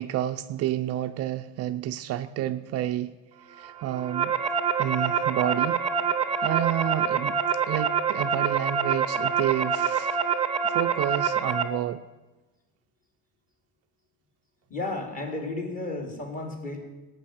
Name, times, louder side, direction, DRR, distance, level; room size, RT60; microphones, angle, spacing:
voice 1, 0.0-3.1 3.4-4.4 4.8-5.8 6.4-10.2 10.6-12.0, right 13 dB, 45° right, 9 dB, 0.5 m, -30 dB
sound 1, 3.8-11.6, right 6 dB, 20° right, 0.8 m, -26 dB
voice 2, 14.7-16.8, left 2 dB, 25° left, 2 dB, 2.7 m, -33 dB
18.0 x 6.2 x 10.0 m, 1.1 s
cardioid pair, 175°, 33 cm